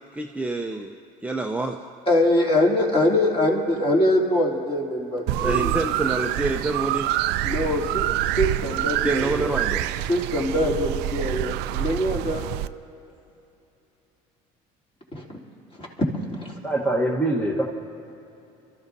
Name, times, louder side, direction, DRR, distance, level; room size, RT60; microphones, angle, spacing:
voice 1, 0.1-0.9 1.2-1.8 5.4-7.1 9.0-9.8, right 2 dB, 10° right, 1 dB, 0.7 m, -27 dB
voice 2, 2.1-5.7 7.4-9.6 10.1-12.5 15.1-15.2 15.8-15.9 16.4-16.5, left 1 dB, 35° left, -3 dB, 3.4 m, -23 dB
sound 1, 5.3-12.7, right 14 dB, 75° right, 0.4 m, -26 dB
voice 3, 16.6-17.6, right 1 dB, 10° left, -3 dB, 1.3 m, -23 dB
28.0 x 13.5 x 2.8 m, 2.8 s
supercardioid pair, 90°, 18 cm